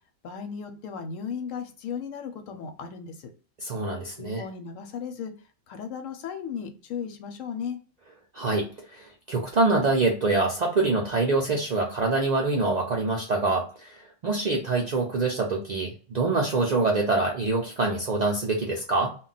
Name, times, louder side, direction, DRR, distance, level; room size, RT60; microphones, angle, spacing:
voice 1, 0.2-3.3 4.2-5.3 5.7-7.8, left 6 dB, 85° left, 6 dB, 1.0 m, -35 dB
voice 2, 3.6-4.4 8.3-19.2, right 3 dB, 60° right, -1 dB, 0.4 m, -25 dB
2.3 x 2.1 x 3.8 m, 0.37 s
omnidirectional pair, 1.3 m